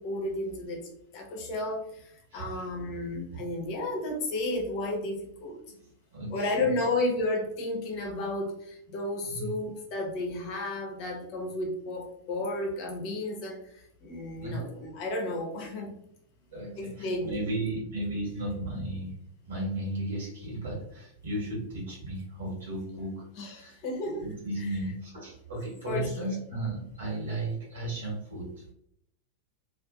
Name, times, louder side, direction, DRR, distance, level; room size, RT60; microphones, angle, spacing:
voice 1, 0.0-5.6 6.3-15.9 16.8-17.5 23.4-24.3 24.6-24.8 25.8-26.3, left 2 dB, 45° left, 0 dB, 0.7 m, -33 dB
voice 2, 2.3-2.7 6.1-6.6 9.2-9.5 14.4-14.6 16.5-19.1 19.4-23.8 24.2-28.6, right 1 dB, 65° right, -4 dB, 1.4 m, -35 dB
2.5 x 2.5 x 2.3 m, 0.74 s
figure-of-eight pair, 90°, 0 cm